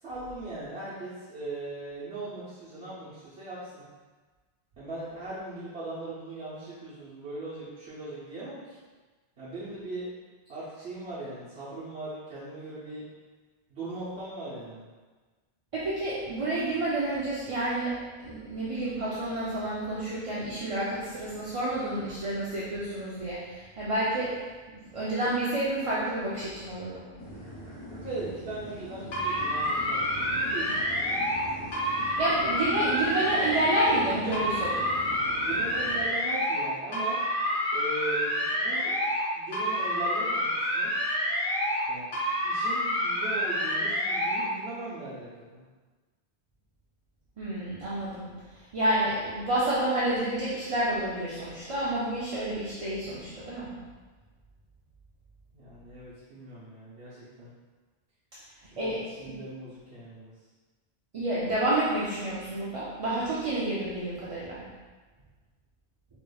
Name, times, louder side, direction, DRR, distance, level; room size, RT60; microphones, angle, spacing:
voice 1, 0.0-3.8 4.8-8.8 9.4-10.1 10.5-13.0 13.7-14.9 27.8-31.2 35.4-37.2 37.7-39.0 39.3-40.9 41.9-42.1 42.4-45.7 55.5-57.5 58.6-60.3, right 2 dB, 75° right, -12 dB, 1.2 m, -39 dB
voice 2, 15.7-18.0 18.2-24.3 24.9-27.0 32.0-34.8 47.4-48.2 48.7-53.7 58.8-59.3 61.1-64.6, right 1 dB, 40° right, -9 dB, 0.5 m, -29 dB
sound 1, 27.2-36.1, equal, 30° left, 0.8 m, -42 dB
sound 2, 29.1-31.4 31.7-34.0 34.3-36.6 36.9-39.2 39.5-41.8 42.1-44.4, equal, 55° left, 1.1 m, -28 dB
4.9 x 3.0 x 2.3 m, 1.3 s
omnidirectional pair, 1.1 m